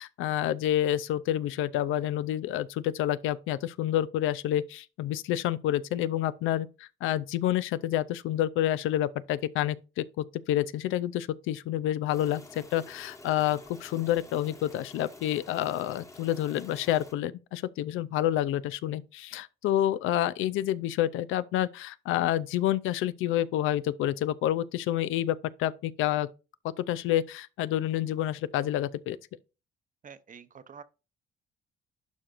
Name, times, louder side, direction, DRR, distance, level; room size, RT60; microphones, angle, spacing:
voice 1, 0.0-26.3 26.8-29.2, left 12 dB, 90° left, 0.5 m, -28 dB
sound 1, 12.1-17.1, left 2 dB, 15° left, 1.2 m, -50 dB
voice 2, 30.0-30.8, right 6 dB, 40° right, 0.8 m, -48 dB
11.5 x 4.4 x 2.5 m
cardioid pair, 90°, 20 cm